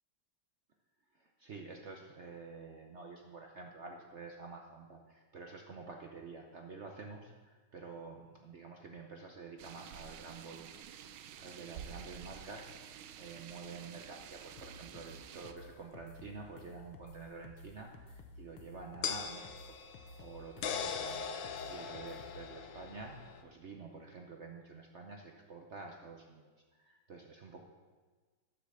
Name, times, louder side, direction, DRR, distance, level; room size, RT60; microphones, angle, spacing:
voice 1, 1.1-10.8 11.1-21.4 21.7-27.6, right 4 dB, 70° right, 2 dB, 0.6 m, -49 dB
sound 1, 9.6-15.5, right 9 dB, 85° right, 1.4 m, -50 dB
sound 2, 14.6-22.5, left 3 dB, 90° left, 1.6 m, -54 dB
sound 3, 17.1-17.2 19.0-23.4, left 6 dB, 70° left, 1.4 m, -40 dB
9.9 x 5.8 x 6.7 m, 1.4 s
omnidirectional pair, 2.3 m